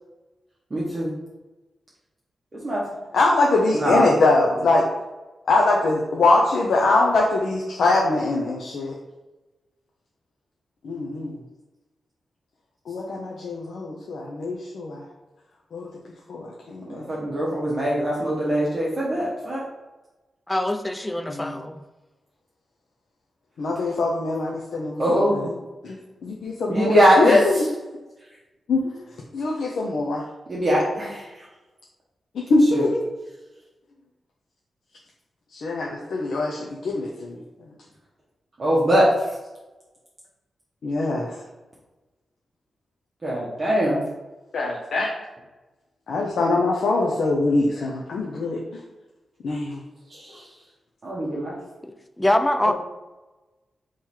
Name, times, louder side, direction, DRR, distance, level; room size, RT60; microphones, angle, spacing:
voice 1, 0.7-1.1 2.6-2.8 3.7-4.1 16.9-19.6 25.0-25.3 26.7-27.4 30.5-31.3 32.7-32.8 38.6-39.1 43.2-44.0 50.1-50.4 51.0-51.5, equal, 35° right, -6 dB, 1.0 m, -21 dB
voice 2, 3.1-4.9 5.5-8.9 10.8-11.3 12.9-15.0 15.7-15.9 16.3-17.2 21.3-21.5 23.6-25.1 25.3-25.5 25.8-26.0 26.2-27.7 28.7-28.9 29.3-30.2 32.3-33.0 35.5-37.4 40.8-41.4 44.5-45.1 46.1-48.6 49.4-49.8, left 2 dB, 80° left, -2 dB, 0.6 m, -22 dB
voice 3, 20.5-21.8 51.8-52.7, left 1 dB, 10° left, 8 dB, 0.3 m, -24 dB
3.7 x 3.0 x 4.3 m, 1.1 s
wide cardioid pair, 95°, 0 cm